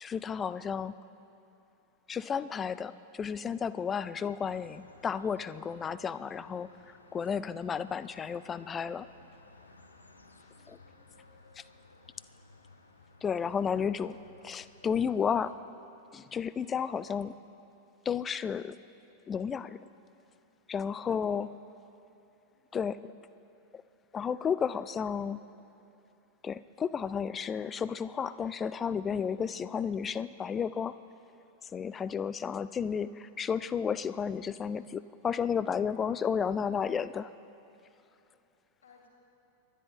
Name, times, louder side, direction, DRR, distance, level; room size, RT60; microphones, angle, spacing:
voice 1, 0.0-0.9 2.1-6.7 7.1-9.1 10.7-10.8 11.6-11.7 13.2-14.2 14.4-15.5 16.1-17.3 18.1-18.8 19.3-19.8 20.7-21.5 22.7-23.0 24.1-25.4 26.4-30.9 31.7-37.3, left 7 dB, 20° left, 16 dB, 0.4 m, -32 dB
sound 1, 4.4-15.5, left 3 dB, 80° left, 1.0 m, -57 dB
voice 2, 10.5-11.1 13.5-13.8 17.1-17.2 21.1-21.4 22.5-22.9 32.5-32.6 38.8-39.1, left 5 dB, 60° left, -2 dB, 2.7 m, -63 dB
26.5 x 10.5 x 3.7 m, 2.8 s
figure-of-eight pair, 90°, 0 cm